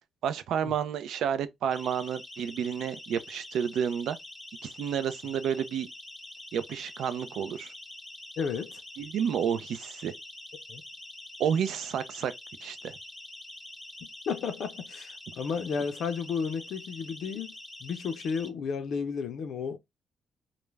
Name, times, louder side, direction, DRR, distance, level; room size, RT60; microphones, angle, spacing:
voice 1, 0.2-4.2 4.6-5.9 6.5-7.7 9.0-10.1 11.4-12.3 12.6-12.9, right 8 dB, 80° right, 0.4 m, -30 dB
Siren, 1.7-18.5, left 1 dB, 10° left, 0.6 m, -46 dB
voice 2, 8.4-8.8 10.7-10.8 14.3-17.6 17.8-19.8, left 6 dB, 70° left, 0.5 m, -33 dB
2.3 x 2.0 x 3.1 m
cardioid pair, 130°, 0 cm